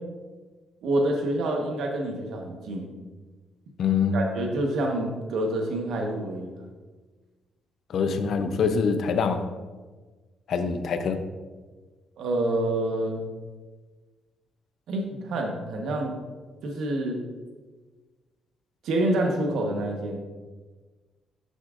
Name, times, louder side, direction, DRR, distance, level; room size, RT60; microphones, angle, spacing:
voice 1, 0.8-2.9 4.1-6.5 12.2-13.3 14.9-16.2 16.6-17.2 18.8-20.2, right 1 dB, 75° right, 1 dB, 1.1 m, -27 dB
voice 2, 3.8-4.3 7.9-9.4 10.5-11.2, left 5 dB, 65° left, 8 dB, 0.6 m, -24 dB
9.1 x 6.0 x 2.5 m, 1.3 s
cardioid pair, 90°, 0 cm